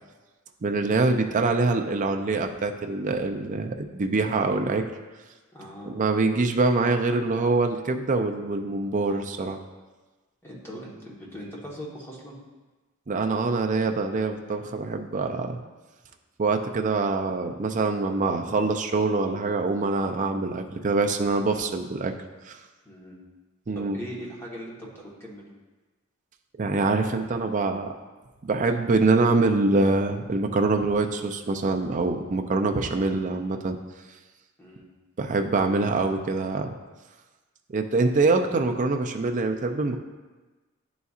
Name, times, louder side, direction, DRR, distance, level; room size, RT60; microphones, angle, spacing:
voice 1, 0.6-4.8 5.8-9.6 13.1-15.6 16.4-22.1 22.5-22.6 23.7-24.0 26.6-28.0 28.4-33.8 35.2-36.7 37.7-40.0, right 3 dB, 35° right, 5 dB, 0.4 m, -24 dB
voice 2, 5.5-5.9 10.4-12.4 22.8-23.2 23.7-25.5 34.6-34.9, equal, 10° left, -4 dB, 1.2 m, -40 dB
10.5 x 4.1 x 2.4 m, 1.3 s
head